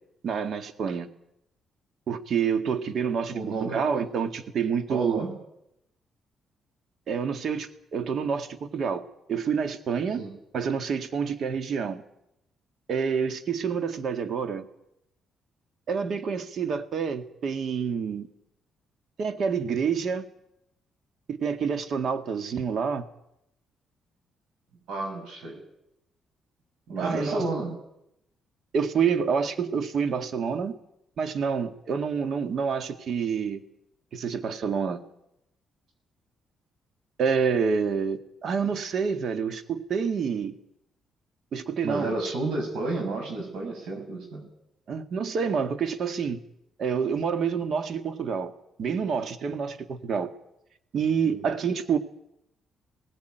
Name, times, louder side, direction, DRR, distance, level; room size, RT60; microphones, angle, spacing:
voice 1, 0.2-1.1 2.1-5.2 7.1-9.0 9.3-10.2 10.5-12.0 12.9-14.6 15.9-18.3 19.2-20.3 21.3-23.1 27.0-27.4 28.7-30.8 31.2-33.6 34.1-35.0 37.2-40.5 41.5-42.1 44.9-46.4 46.8-48.5 48.8-50.3 50.9-52.0, right 6 dB, 60° right, 9 dB, 1.9 m, -28 dB
voice 2, 3.3-3.8 4.9-5.3 10.2-10.3 24.9-25.6 26.9-27.8 41.8-44.5 51.3-51.4, right 2 dB, 80° right, 2 dB, 6.3 m, -31 dB
18.5 x 16.5 x 9.2 m, 0.82 s
cardioid pair, 90°, 0 cm